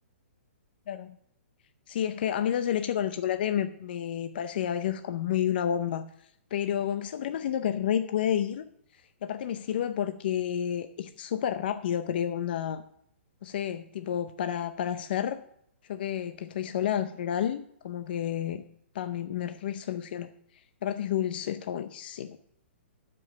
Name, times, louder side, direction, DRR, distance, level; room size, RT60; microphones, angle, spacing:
voice 1, 1.9-6.0 6.5-8.7 9.2-12.8 13.4-15.4 15.9-18.6 18.9-20.3 20.8-22.4, left 9 dB, 50° left, 9 dB, 0.6 m, -30 dB
12.5 x 5.4 x 6.5 m, 0.71 s
hypercardioid pair, 165°, 7 cm